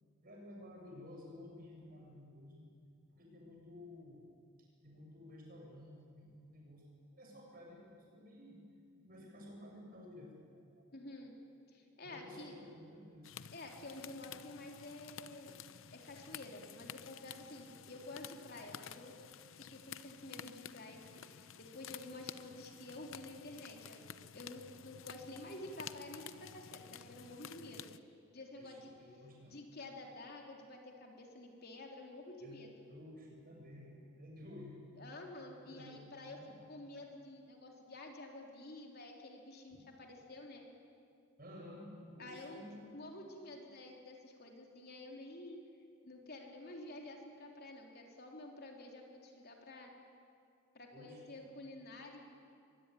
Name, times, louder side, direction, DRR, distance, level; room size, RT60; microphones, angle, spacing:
voice 1, 0.2-2.7 3.1-4.3 4.8-8.6 9.0-10.4 10.8-10.9 12.0-13.3 28.6-29.6 32.4-32.6 32.8-34.8 35.7-36.6 39.7-39.8 41.4-43.0 50.9-51.4, left 1 dB, 45° right, 0 dB, 7.4 m, -53 dB
voice 2, 10.9-11.3 11.7-12.6 13.5-15.5 15.9-19.2 19.5-24.0 24.3-27.9 28.3-28.9 29.5-32.7 35.0-36.4 36.7-40.7 42.2-42.6 42.9-45.6 46.0-49.9 50.7-52.3, left 2 dB, 50° left, 1 dB, 3.4 m, -50 dB
sound 1, 13.2-28.0, left 8 dB, 70° left, 0.8 m, -52 dB
23.5 x 22.0 x 10.0 m, 2.3 s
head